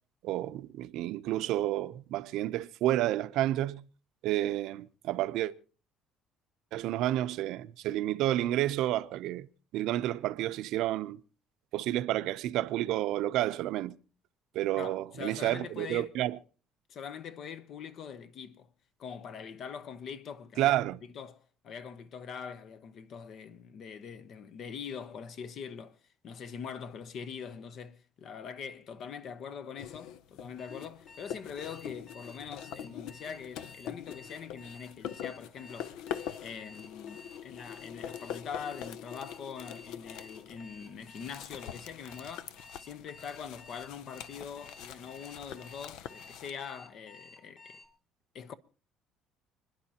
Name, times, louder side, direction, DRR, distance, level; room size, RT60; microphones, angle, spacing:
voice 1, 0.2-3.9 4.2-5.5 6.7-9.5 9.7-11.2 11.7-14.0 14.5-16.4 20.6-21.0, right 14 dB, 75° right, 0.6 m, -30 dB
voice 2, 14.8-16.1 16.9-18.7 19.0-20.8 21.0-26.0 26.2-35.9 36.4-42.5 42.8-47.8 48.3-48.5, left 7 dB, 50° left, 0.8 m, -43 dB
sound 1, 29.8-46.5, left 10 dB, 80° left, 0.6 m, -44 dB
Alarm, 30.6-47.9, left 3 dB, 30° left, 2.4 m, -53 dB
29.5 x 10.5 x 2.9 m
cardioid pair, 135°, 0 cm